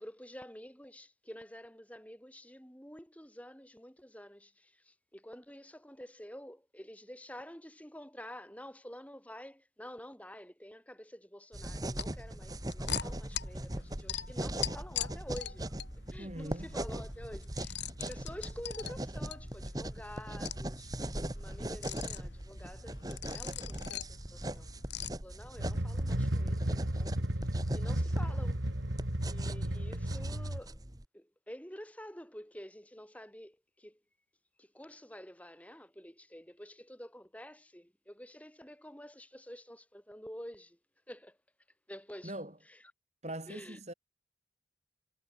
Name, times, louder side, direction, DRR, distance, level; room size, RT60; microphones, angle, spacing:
voice 1, 0.0-15.8 16.1-20.9 21.3-24.7 25.2-28.6 29.3-30.8 31.1-34.0 34.6-40.8 41.1-41.4 41.9-42.3 42.7-42.8 43.5-43.8, equal, 5° left, 6.5 m, -49 dB
sound 1, 11.5-25.1, left 8 dB, 65° left, 4.2 m, -43 dB
sound 2, 11.5-31.1, right 1 dB, 20° right, 1.7 m, -41 dB
voice 2, 16.2-16.8 42.2-42.6 43.2-43.9, right 1 dB, 35° right, 3.9 m, -42 dB
sound 3, 25.6-30.6, right 1 dB, 75° right, 3.0 m, -33 dB
head